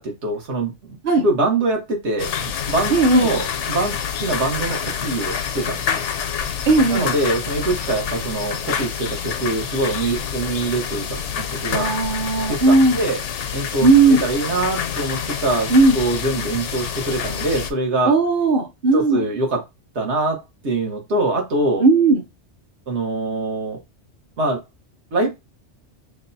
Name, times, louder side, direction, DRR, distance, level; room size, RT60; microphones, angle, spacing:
voice 1, 0.0-6.0 6.9-11.9 12.5-13.2 13.5-13.9 14.2-18.1 18.9-19.6 19.9-21.8 22.9-23.8 24.4-24.6 25.1-25.3, right 2 dB, 70° right, 1.4 m, -24 dB
sound 1, 2.2-17.7, left 8 dB, 85° left, 0.9 m, -27 dB
voice 2, 2.9-3.3 6.6-7.1 11.7-13.0 13.8-14.2 15.7-16.0 18.0-19.2 21.8-22.2, right 3 dB, 50° right, 0.9 m, -16 dB
5.8 x 2.3 x 2.6 m
omnidirectional pair, 1.2 m